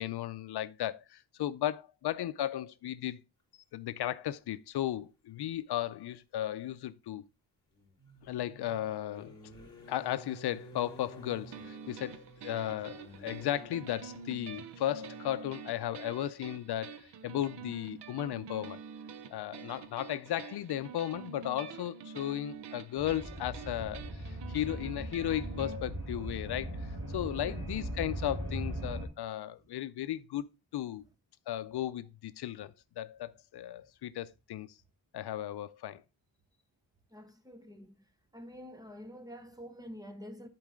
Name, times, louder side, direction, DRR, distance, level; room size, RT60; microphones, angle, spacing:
voice 1, 0.0-3.2 3.7-7.2 8.2-9.4 9.9-18.8 19.3-30.5 30.7-31.0 31.5-34.7 35.1-36.0, left 12 dB, 75° left, 0.5 m, -35 dB
sound 1, 5.4-5.5 7.7-15.4 16.6-16.7 17.0-17.2, equal, 10° left, 2.9 m, -53 dB
sound 2, 11.5-25.8, right 7 dB, 80° right, 0.8 m, -47 dB
sound 3, 23.0-29.1, right 1 dB, 60° right, 2.8 m, -39 dB
voice 2, 37.1-38.0 38.3-40.5, equal, 10° right, 0.9 m, -47 dB
10.5 x 4.7 x 3.6 m
wide cardioid pair, 145°, 40 cm